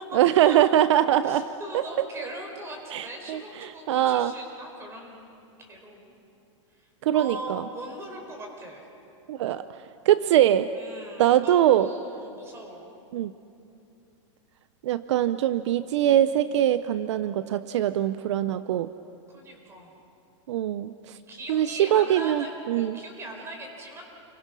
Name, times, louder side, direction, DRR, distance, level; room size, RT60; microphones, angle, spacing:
voice 1, 0.1-1.5 1.7-2.1 2.9-4.3 7.0-7.6 9.3-9.6 10.0-10.7 11.2-11.9 13.1-13.3 14.8-18.9 20.5-21.2 21.5-23.0, right 11 dB, 60° right, 13 dB, 0.7 m, -22 dB
voice 2, 1.2-5.3 5.6-6.0 6.8-6.9 7.1-8.9 10.8-12.9 19.3-19.9 21.3-24.0, right 1 dB, 15° right, 2 dB, 4.4 m, -40 dB
29.0 x 22.5 x 6.3 m, 2.7 s
supercardioid pair, 155°, 17 cm